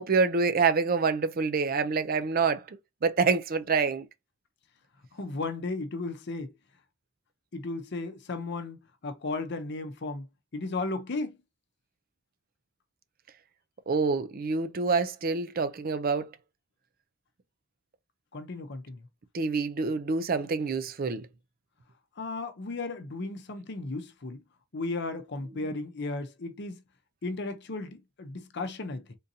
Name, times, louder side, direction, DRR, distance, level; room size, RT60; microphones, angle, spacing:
voice 1, 0.0-2.6 3.0-4.1 13.9-16.3 19.3-21.3, right 4 dB, 45° right, 0.5 m, -26 dB
voice 2, 5.1-6.5 7.5-10.3 10.5-11.4 18.3-19.1 22.2-24.4 24.7-26.8 27.2-29.2, left 3 dB, 55° left, 0.7 m, -35 dB
3.7 x 2.6 x 2.7 m
head